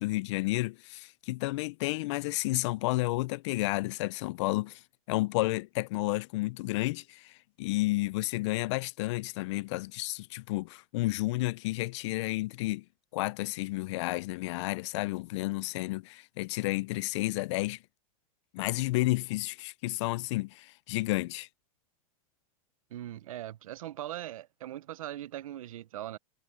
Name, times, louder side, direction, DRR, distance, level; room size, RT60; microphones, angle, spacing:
voice 1, 0.0-4.8 5.1-12.8 13.1-17.8 18.5-21.5, left 20 dB, 55° left, 0.5 m, -31 dB
voice 2, 22.9-26.2, right 13 dB, 75° right, 1.0 m, -40 dB
hypercardioid pair, 135°, 18 cm